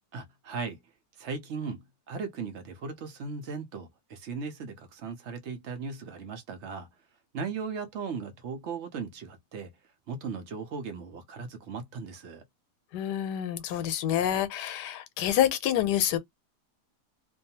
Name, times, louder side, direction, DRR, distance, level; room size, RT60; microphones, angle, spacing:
voice 1, 0.1-0.8 1.2-6.9 7.3-9.7 10.1-12.4, right 5 dB, 65° right, 0.7 m, -37 dB
voice 2, 12.9-16.2, left 11 dB, 90° left, 1.2 m, -27 dB
2.6 x 2.2 x 2.7 m
omnidirectional pair, 1.7 m